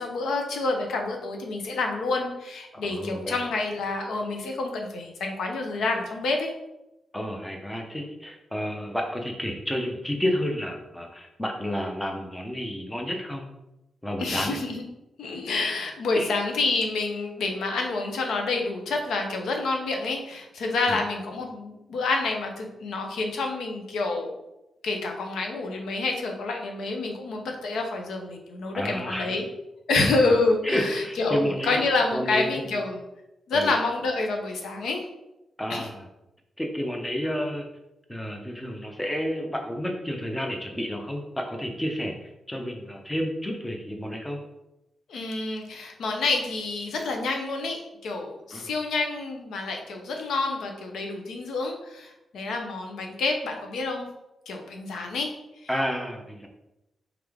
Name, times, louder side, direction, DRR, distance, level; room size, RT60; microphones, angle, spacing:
voice 1, 0.0-6.5 14.2-14.8 15.2-24.4 24.8-29.4 29.9-33.0 33.5-35.0 35.7-35.9 45.1-54.1 54.5-55.3, left 3 dB, 90° left, 2 dB, 0.7 m, -28 dB
voice 2, 2.8-3.4 7.1-13.4 14.0-14.6 16.1-16.3 20.9-21.0 28.7-29.4 30.3-30.4 30.6-31.8 32.1-32.8 33.5-33.7 35.6-36.0 36.6-37.7 38.1-44.4 48.5-48.7 55.7-56.5, equal, 10° left, 2 dB, 0.6 m, -30 dB
3.5 x 3.4 x 3.5 m, 0.92 s
cardioid pair, 110°, 0 cm